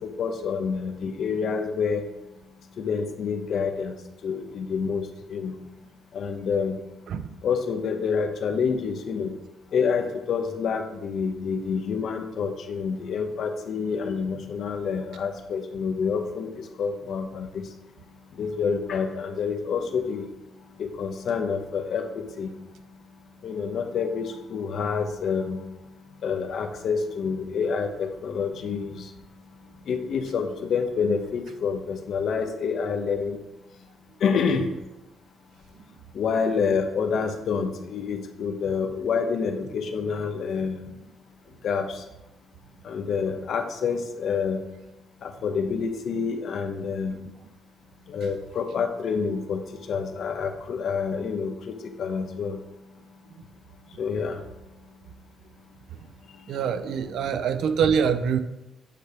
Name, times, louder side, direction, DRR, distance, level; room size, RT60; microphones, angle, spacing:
voice 1, 0.0-2.0 2.8-4.0 4.2-5.5 6.1-6.8 7.4-9.3 9.7-17.7 18.4-20.3 20.8-22.5 23.4-25.6 26.2-29.1 29.9-33.4 34.2-34.6 36.1-40.8 41.6-42.0 42.8-44.6 45.2-47.2 48.1-49.6 49.9-52.6 54.0-54.4, left 5 dB, 65° left, 5 dB, 1.0 m, -28 dB
voice 2, 56.5-58.4, right 7 dB, 75° right, 11 dB, 0.6 m, -24 dB
8.9 x 3.4 x 5.9 m, 0.94 s
cardioid pair, 90°, 0 cm